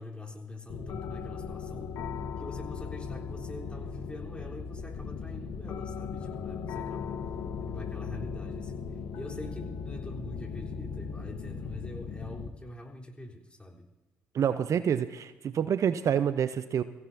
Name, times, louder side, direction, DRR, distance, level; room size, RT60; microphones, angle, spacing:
voice 1, 0.0-1.9 2.4-7.2 7.6-13.9, left 2 dB, 15° left, -1 dB, 3.7 m, -44 dB
sound 1, 0.7-12.5, left 5 dB, 70° left, 1.4 m, -38 dB
voice 2, 14.3-16.8, right 8 dB, 55° right, 12 dB, 0.7 m, -27 dB
23.5 x 16.0 x 2.8 m, 1.1 s
hypercardioid pair, 55°, 6 cm